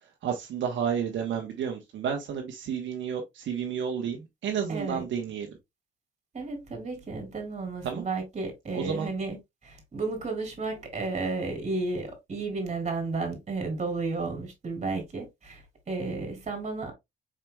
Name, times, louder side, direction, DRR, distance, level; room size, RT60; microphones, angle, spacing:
voice 1, 0.2-5.5 7.8-8.0 8.7-9.1, right 7 dB, 70° right, 1.0 m, -31 dB
voice 2, 4.7-5.0 6.3-9.4 9.6-16.9, right 3 dB, 35° right, 2.5 m, -33 dB
4.9 x 4.4 x 2.2 m
cardioid pair, 90°, 20 cm